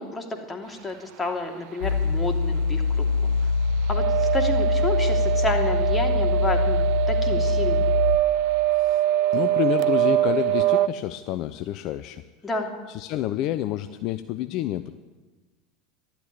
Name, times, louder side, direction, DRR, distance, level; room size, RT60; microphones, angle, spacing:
voice 1, 0.0-3.1 3.9-7.9 12.4-12.7, left 2 dB, 20° left, 3 dB, 2.8 m, -30 dB
sound 1, 1.8-8.2, left 4 dB, 85° left, 1.1 m, -24 dB
sound 2, 3.9-10.9, right 15 dB, 55° right, 0.4 m, -23 dB
voice 2, 9.3-12.2 12.9-14.9, left 13 dB, 50° left, 12 dB, 0.6 m, -28 dB
12.0 x 11.5 x 10.0 m, 1.2 s
figure-of-eight pair, 75°, 0 cm